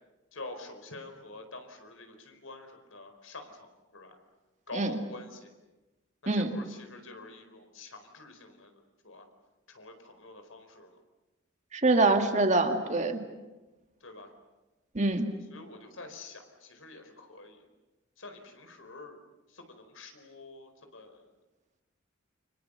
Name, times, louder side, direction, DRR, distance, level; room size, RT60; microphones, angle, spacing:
voice 1, 0.3-3.7 3.9-4.2 4.7-5.5 6.3-9.3 9.7-11.0 14.0-14.3 15.5-17.6 18.2-19.2 19.5-21.2, left 2 dB, 85° left, 6 dB, 4.5 m, -47 dB
voice 2, 11.7-13.2 14.9-15.3, right 2 dB, 35° right, 5 dB, 2.1 m, -25 dB
29.5 x 25.5 x 6.8 m, 1.1 s
head